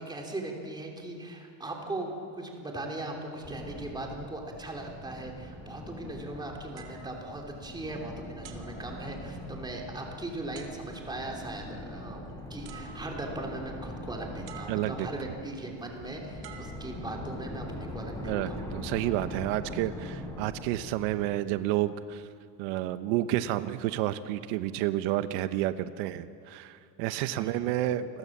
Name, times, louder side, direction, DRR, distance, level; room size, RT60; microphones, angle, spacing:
voice 1, 0.0-12.2 12.5-18.6 27.4-27.7, right 2 dB, 10° right, 1 dB, 3.1 m, -39 dB
sound 1, 3.4-21.9, left 1 dB, 5° left, 3.0 m, -42 dB
sound 2, 6.8-8.0 8.4-9.6 10.5-11.2 12.3-12.4 12.6-13.5 14.5-15.3 16.4-17.5 18.2-18.5, right 7 dB, 50° right, 3.0 m, -51 dB
voice 2, 14.7-15.1 18.2-22.3 22.6-28.2, right 14 dB, 90° right, 12 dB, 1.1 m, -30 dB
29.5 x 21.5 x 7.3 m, 2.3 s
cardioid pair, 175°, 48 cm